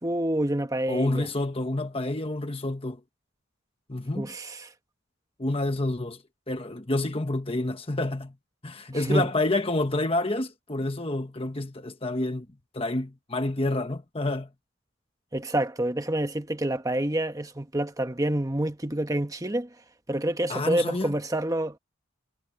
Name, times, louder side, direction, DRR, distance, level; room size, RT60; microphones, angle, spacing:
voice 1, 0.0-1.3 4.1-4.7 8.9-9.3 15.3-19.7 20.1-21.8, right 1 dB, 15° right, 1.1 m, -27 dB
voice 2, 0.9-3.0 3.9-4.3 5.4-6.2 6.5-8.3 8.6-12.5 12.7-14.5 20.5-21.1, left 2 dB, 25° left, 1.2 m, -28 dB
head